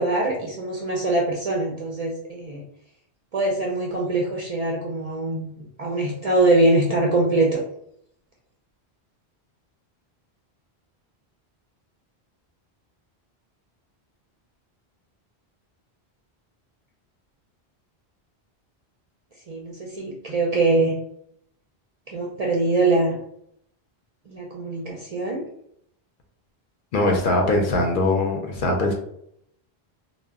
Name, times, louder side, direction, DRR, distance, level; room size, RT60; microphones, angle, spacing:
voice 1, 0.0-2.6 3.3-5.5 5.8-7.6 19.5-20.9 22.1-23.2 24.3-25.4, right 2 dB, 55° right, -2 dB, 0.4 m, -23 dB
voice 2, 26.9-28.9, left 2 dB, 60° left, 2 dB, 0.7 m, -21 dB
2.1 x 2.0 x 3.4 m, 0.71 s
omnidirectional pair, 1.1 m